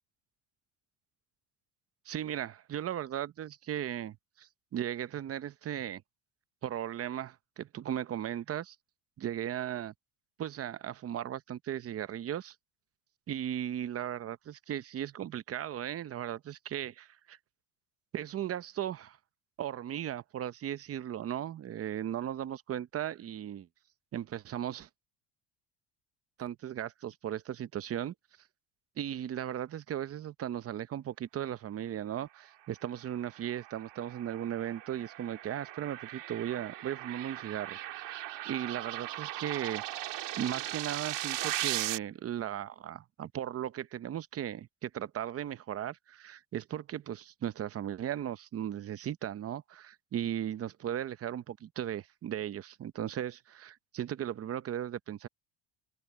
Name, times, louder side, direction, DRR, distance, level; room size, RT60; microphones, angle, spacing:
voice 1, 2.1-6.0 6.6-8.8 9.2-9.9 10.4-12.5 13.3-17.4 18.1-19.2 19.6-23.7 24.1-24.9 26.4-28.1 29.0-37.8 38.0-38.2 38.5-39.8 40.4-55.3, right 10 dB, 30° right, 0.7 m, -37 dB
sound 1, 33.1-42.0, right 14 dB, 60° right, 2.7 m, -38 dB
open air
cardioid pair, 135°, 49 cm